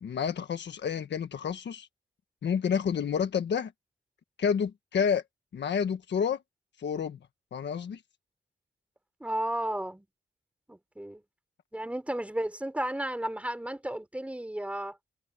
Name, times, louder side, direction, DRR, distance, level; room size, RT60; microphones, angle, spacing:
voice 1, 0.0-1.9 2.4-3.7 4.4-5.2 5.5-6.4 6.8-7.2 7.5-8.0, left 7 dB, 65° left, 1.4 m, -29 dB
voice 2, 9.2-10.1 10.7-11.2 11.7-15.0, right 1 dB, 5° right, 4.6 m, -33 dB
wide cardioid pair, 165°, 20 cm